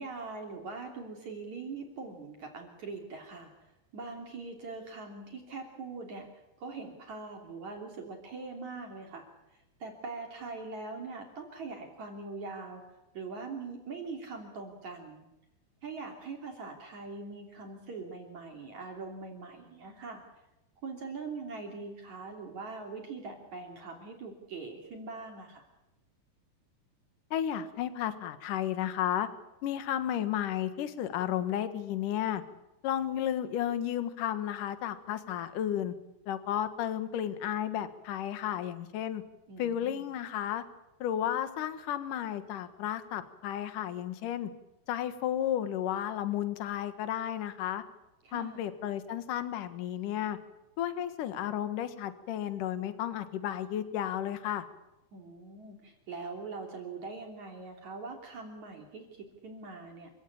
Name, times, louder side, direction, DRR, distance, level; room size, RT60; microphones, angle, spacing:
voice 1, 0.0-3.5 3.9-6.3 6.6-9.3 9.8-15.3 15.8-20.2 20.8-25.6 39.5-40.1 48.2-48.7 55.1-60.1, right 4 dB, 45° right, 2 dB, 4.1 m, -42 dB
voice 2, 27.3-29.3 29.6-32.4 32.8-35.9 36.3-39.2 39.6-40.6 41.0-44.5 44.9-47.8 48.3-50.4 50.8-54.6, left 10 dB, 60° left, 11 dB, 2.7 m, -33 dB
28.0 x 17.0 x 8.8 m, 0.95 s
omnidirectional pair, 4.9 m